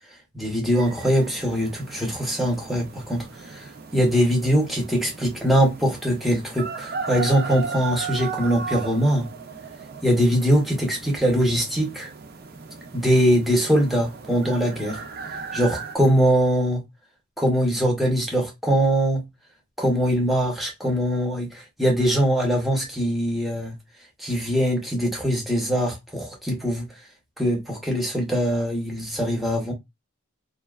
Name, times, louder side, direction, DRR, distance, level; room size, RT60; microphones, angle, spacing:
voice 1, 0.3-9.3 10.0-12.1 12.9-15.0 15.5-16.8 17.4-19.2 19.8-23.7 24.2-26.9 27.4-29.7, equal, ahead, 0.6 m, -22 dB
sound 1, 0.7-16.0, right 5 dB, 45° right, 0.4 m, -36 dB
2.5 x 2.2 x 2.2 m
head